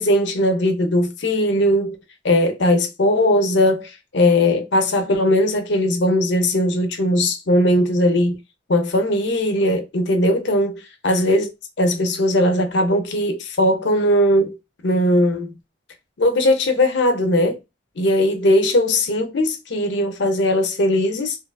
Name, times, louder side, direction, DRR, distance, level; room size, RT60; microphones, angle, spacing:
voice 1, 0.0-2.0 2.2-8.4 8.7-11.5 11.8-14.6 14.8-15.5 16.2-17.6 18.0-21.4, left 1 dB, 60° left, 0.6 m, -19 dB
2.9 x 2.3 x 2.2 m
head